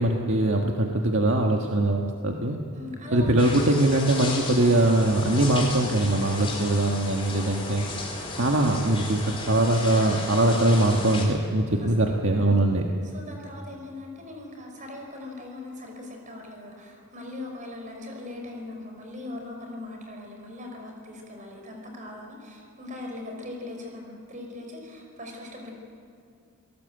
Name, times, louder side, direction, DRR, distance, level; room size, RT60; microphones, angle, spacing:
voice 1, 0.0-2.6 3.1-7.9 8.4-12.8, right 1 dB, 60° right, 1 dB, 1.6 m, -22 dB
voice 2, 2.7-3.3 11.7-12.6 13.0-25.7, left 2 dB, 35° right, 2 dB, 5.3 m, -40 dB
sound 1, 3.4-11.2, left 3 dB, 25° left, 4.3 m, -35 dB
27.5 x 18.5 x 8.0 m, 2.4 s
head